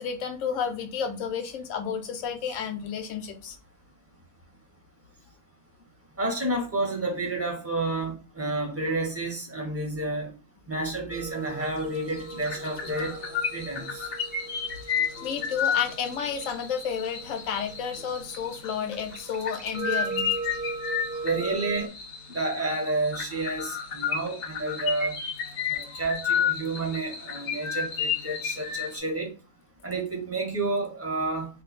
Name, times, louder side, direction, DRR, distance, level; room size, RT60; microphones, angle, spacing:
voice 1, 0.0-3.6 15.2-20.3, left 7 dB, 75° left, 1.0 m, -31 dB
voice 2, 6.2-10.3 10.7-13.2 13.5-14.1 21.2-21.9 22.3-25.1 25.7-29.3 29.8-31.5, right 2 dB, 10° right, 0.8 m, -30 dB
sound 1, 11.1-21.9, right 3 dB, 45° right, 0.8 m, -39 dB
sound 2, 11.6-11.9 12.2-29.0, left 7 dB, 55° left, 0.8 m, -32 dB
2.6 x 2.5 x 4.1 m
omnidirectional pair, 1.4 m